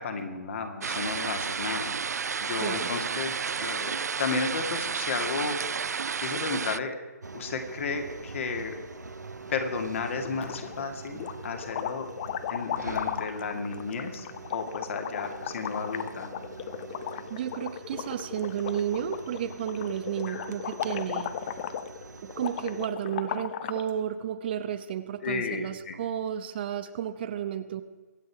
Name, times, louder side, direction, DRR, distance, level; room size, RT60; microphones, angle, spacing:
voice 1, 0.0-1.9 2.4-3.3 3.6-5.6 6.2-7.0 7.3-8.8 9.5-12.1 12.5-14.3 14.5-16.3 20.3-20.5 25.2-25.9, left 4 dB, 50° left, 5 dB, 2.3 m, -33 dB
sound 1, 0.8-6.8, right 6 dB, 70° right, 0.4 m, -31 dB
voice 2, 2.6-2.9 17.3-21.4 22.2-27.8, right 9 dB, 35° right, 11 dB, 0.8 m, -32 dB
sound 2, 7.2-22.9, right 4 dB, 85° right, 1.4 m, -44 dB
sound 3, 10.2-10.8 11.2-23.9, left 10 dB, 30° left, 0.7 m, -36 dB
23.5 x 8.5 x 4.7 m, 1.3 s
figure-of-eight pair, 145°, 9 cm